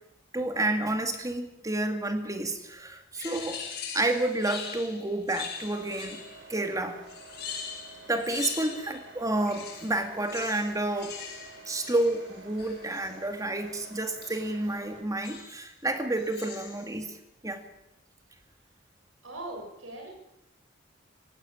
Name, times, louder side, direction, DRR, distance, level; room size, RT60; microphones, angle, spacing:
voice 1, 0.3-3.6 3.9-6.2 6.5-7.0 8.1-11.2 11.7-17.2 17.4-17.6, right 2 dB, 20° right, 6 dB, 2.4 m, -30 dB
sound 1, 3.1-6.5 7.1-9.1 9.3-13.2 14.2-14.6 15.2-15.7 16.1-16.9, left 6 dB, 55° left, 6.1 m, -42 dB
sound 2, 5.6-15.0, right 3 dB, 65° right, 3.4 m, -50 dB
voice 2, 19.2-20.1, right 2 dB, 80° right, 1 dB, 7.8 m, -40 dB
18.0 x 16.0 x 9.0 m, 0.85 s
head